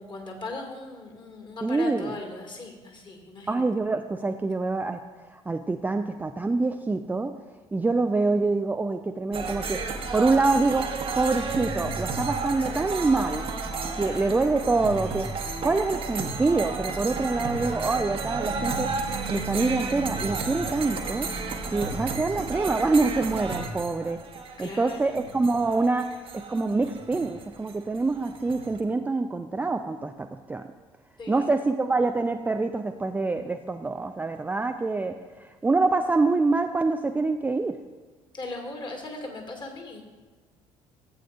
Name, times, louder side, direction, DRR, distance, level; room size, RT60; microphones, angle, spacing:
voice 1, 0.0-3.6 13.9-14.4 24.6-25.0 31.2-31.5 38.3-40.0, left 2 dB, 30° left, 3 dB, 2.0 m, -38 dB
voice 2, 1.6-2.1 3.5-5.0 5.3-7.3 7.7-9.8 10.1-13.5 14.0-15.3 15.6-18.9 19.3-21.3 21.7-24.2 24.6-30.6 31.3-37.8, right 3 dB, 10° right, 6 dB, 0.4 m, -25 dB
sound 1, 9.3-28.8, right 4 dB, 35° right, 1.1 m, -32 dB
14.5 x 8.4 x 2.5 m, 1.4 s
figure-of-eight pair, 55°, 16 cm